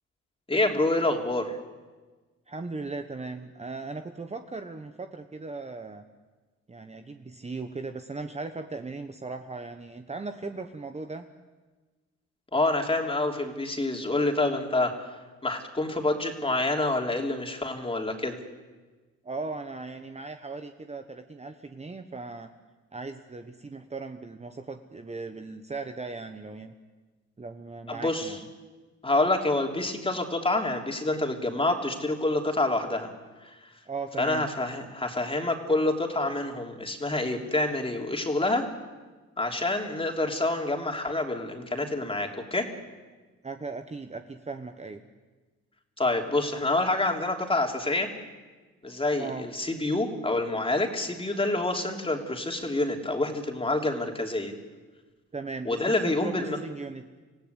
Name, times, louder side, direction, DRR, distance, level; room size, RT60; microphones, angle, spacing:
voice 1, 0.5-1.6 12.5-14.9 15.4-18.4 27.9-28.4 29.0-33.1 33.4-33.6 34.2-38.7 39.4-42.7 46.0-48.1 48.8-54.5 55.6-56.6, left 2 dB, 20° left, 2 dB, 3.2 m, -27 dB
voice 2, 2.5-6.0 6.7-11.3 19.2-22.5 22.9-26.7 27.4-28.4 33.9-34.5 43.4-45.0 49.1-49.5 55.3-57.0, right 3 dB, 20° right, 6 dB, 1.2 m, -38 dB
27.0 x 16.5 x 8.3 m, 1.3 s
cardioid pair, 90°, 30 cm